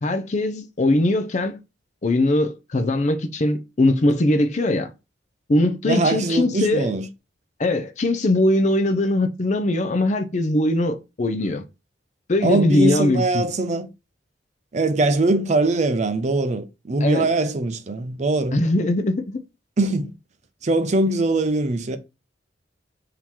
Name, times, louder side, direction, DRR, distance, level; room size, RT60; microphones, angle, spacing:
voice 1, 0.0-1.6 2.0-4.9 5.5-6.9 7.6-11.6 12.3-13.4 17.0-17.3 18.5-19.4, left 1 dB, 40° left, 0.5 m, -21 dB
voice 2, 5.8-7.1 12.4-13.9 14.7-18.6 19.8-20.1 20.6-22.0, right 2 dB, 40° right, 0.5 m, -22 dB
3.7 x 2.9 x 4.4 m
head